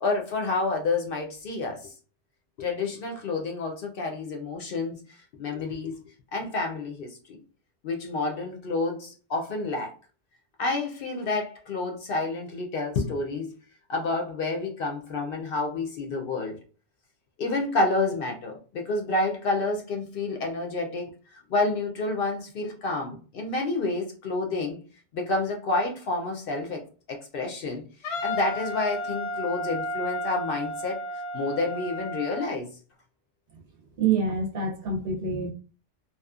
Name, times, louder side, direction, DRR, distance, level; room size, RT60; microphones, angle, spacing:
voice 1, 0.0-1.9 2.6-5.0 5.4-6.0 6.3-7.4 7.8-9.9 10.6-13.5 13.9-16.6 17.4-21.1 21.5-24.8 25.1-26.8 27.1-31.0 31.3-32.7, left 3 dB, 60° left, 2 dB, 0.7 m, -29 dB
Wind instrument woodwind instrument, 28.0-32.5, left 1 dB, 85° left, 0.9 m, -33 dB
voice 2, 34.0-35.5, right 5 dB, 60° right, 0 dB, 0.7 m, -26 dB
2.8 x 2.3 x 2.3 m, 0.37 s
omnidirectional pair, 1.2 m